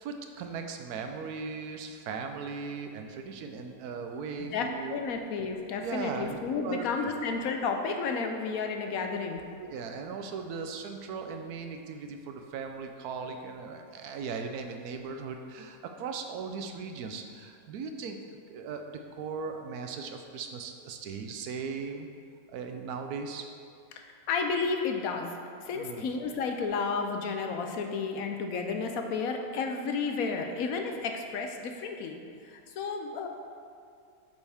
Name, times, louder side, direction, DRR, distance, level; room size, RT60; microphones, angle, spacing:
voice 1, 0.0-5.0 5.8-6.4 6.6-7.1 9.6-22.1 22.5-23.4 25.7-26.1, right 5 dB, 75° right, 5 dB, 1.2 m, -38 dB
voice 2, 4.5-9.4 23.9-25.3 25.6-32.2 32.4-33.3, left 4 dB, 70° left, 4 dB, 1.1 m, -32 dB
8.0 x 6.6 x 3.5 m, 2.4 s
omnidirectional pair, 1.7 m